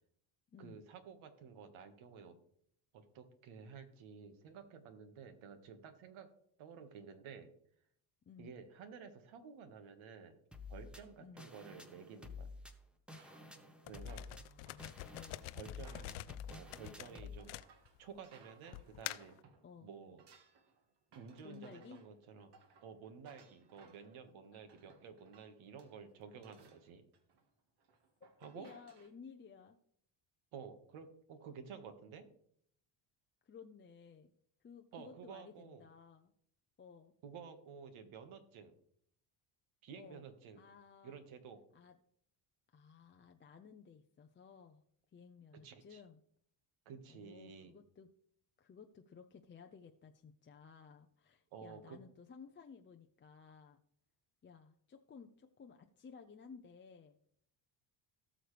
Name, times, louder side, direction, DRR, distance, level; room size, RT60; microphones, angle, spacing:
voice 1, 0.6-2.4 2.9-6.3 6.6-7.5 8.4-10.4 10.7-12.5 13.9-14.3 15.5-17.6 18.0-19.4 19.8-20.3 21.1-22.5 22.8-27.0 28.4-28.7 30.5-32.3 34.9-35.8 37.2-38.7 39.8-40.6 41.0-41.6 45.6-46.0 46.9-47.7 51.5-52.0, right 6 dB, 70° right, 7 dB, 1.8 m, -52 dB
sound 1, 10.5-17.4, left 4 dB, ahead, 1.1 m, -50 dB
sound 2, 13.1-19.7 19.9-29.1, right 5 dB, 55° right, 1.8 m, -66 dB
sound 3, 13.9-18.2 18.7-19.4, left 17 dB, 85° left, 0.6 m, -47 dB
voice 2, 14.2-15.4 19.6-19.9 21.4-22.0 28.5-29.8 33.4-34.3 34.6-36.3 36.8-37.1 39.9-40.2 40.6-41.2 41.7-41.9 42.7-44.8 45.1-46.2 47.1-48.1 48.6-53.8 54.4-57.2, left 6 dB, 25° left, 4 dB, 0.6 m, -56 dB
18.0 x 6.5 x 3.4 m, 0.67 s
cardioid pair, 120°, 49 cm